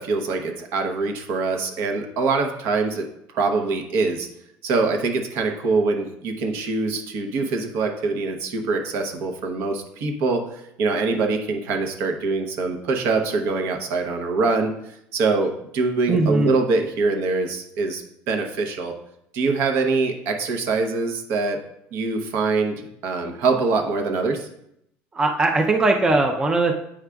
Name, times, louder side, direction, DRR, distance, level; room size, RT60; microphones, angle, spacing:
voice 1, 0.0-3.1 3.3-4.3 4.6-18.9 19.3-21.6 21.9-24.5, right 3 dB, 60° right, 4 dB, 0.9 m, -24 dB
voice 2, 16.1-16.5 25.2-26.7, right 2 dB, 15° right, 3 dB, 0.4 m, -19 dB
8.6 x 4.8 x 2.3 m, 0.77 s
cardioid pair, 140°, 5 cm